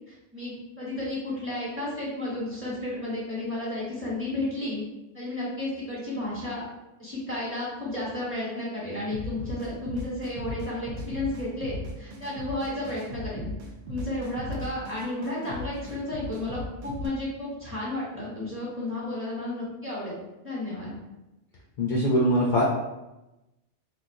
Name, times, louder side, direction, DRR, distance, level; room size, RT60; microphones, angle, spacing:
voice 1, 0.1-4.8 5.1-6.6 7.0-13.5 13.9-20.2 20.4-20.9, left 1 dB, 10° right, -8 dB, 1.0 m, -32 dB
sound 1, 9.1-17.1, left 1 dB, 85° right, 0.9 m, -37 dB
voice 2, 21.8-22.6, equal, 60° left, -3 dB, 0.6 m, -22 dB
3.7 x 2.2 x 2.6 m, 0.98 s
omnidirectional pair, 1.1 m